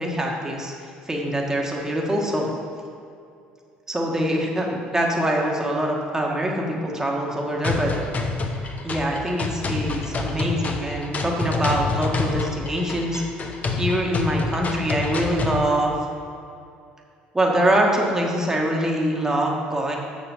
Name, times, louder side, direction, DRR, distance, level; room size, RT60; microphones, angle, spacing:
voice 1, 0.0-2.5 3.9-7.9 8.8-13.2 13.7-16.0 17.3-20.0, right 1 dB, 15° right, -1 dB, 1.5 m, -24 dB
sound 1, 7.6-15.6, left 4 dB, 40° left, 0.9 m, -27 dB
7.0 x 6.0 x 5.9 m, 2.4 s
hypercardioid pair, 70°, 4 cm